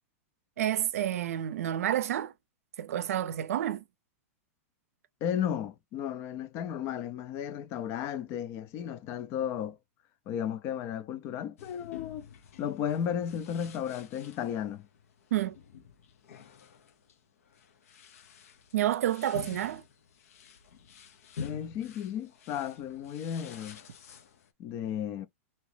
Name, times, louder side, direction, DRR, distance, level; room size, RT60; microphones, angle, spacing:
voice 1, 0.6-2.3 2.8-3.8 15.3-15.6 18.7-19.8, right 12 dB, 80° right, 0.5 m, -29 dB
voice 2, 5.2-9.8 10.3-12.3 12.6-14.9 21.4-23.8 24.6-25.3, left 9 dB, 35° left, 0.4 m, -34 dB
sound 1, 11.6-24.5, left 6 dB, 80° left, 0.7 m, -48 dB
2.9 x 2.8 x 3.2 m
supercardioid pair, 145°, 8 cm